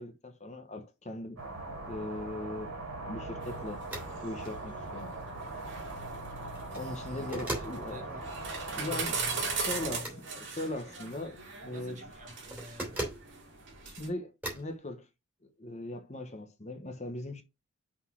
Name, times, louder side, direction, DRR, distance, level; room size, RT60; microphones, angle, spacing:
voice 1, 0.0-1.4 1.9-2.8 3.1-3.8 4.2-5.2 6.7-8.2 8.8-12.0 13.8-15.1 15.4-17.4, left 1 dB, 30° left, 1.0 m, -40 dB
sound 1, 1.4-10.0, right 2 dB, 80° right, 2.8 m, -41 dB
sound 2, 3.4-14.1, right 4 dB, 55° right, 2.4 m, -40 dB
sound 3, 3.9-4.1 4.5-4.6 6.5-6.9 7.3-7.8 9.9-10.2 12.5-13.3 14.4-14.7, right 1 dB, 10° right, 2.7 m, -37 dB
voice 2, 7.2-7.5 7.9-8.4 8.7-10.1 11.7-13.0, left 1 dB, 35° right, 1.8 m, -49 dB
5.8 x 4.1 x 6.1 m
head